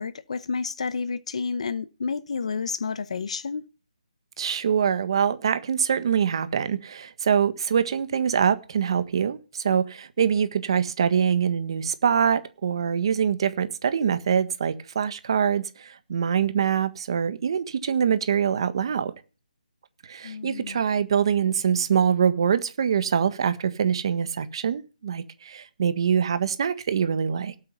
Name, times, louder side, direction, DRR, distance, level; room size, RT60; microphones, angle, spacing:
voice 1, 0.0-3.6 20.2-20.8, left 5 dB, 45° left, 1.0 m, -30 dB
voice 2, 4.4-19.1 20.1-27.5, right 7 dB, 35° right, 1.5 m, -24 dB
18.0 x 7.8 x 5.6 m
hypercardioid pair, 175°, 5 cm